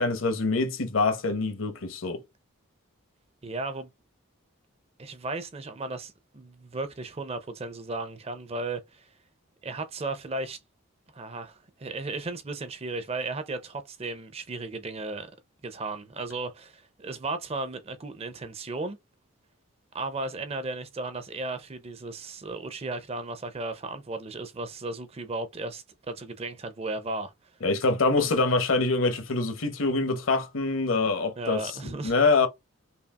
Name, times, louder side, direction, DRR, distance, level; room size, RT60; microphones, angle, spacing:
voice 1, 0.0-2.2 27.6-32.5, left 3 dB, 70° left, 0.9 m, -25 dB
voice 2, 3.4-3.9 5.0-9.1 9.6-10.6 11.1-15.3 15.6-19.0 19.9-27.3 28.2-28.4 31.4-32.1, right 2 dB, 30° right, 0.5 m, -35 dB
5.5 x 2.4 x 2.4 m
head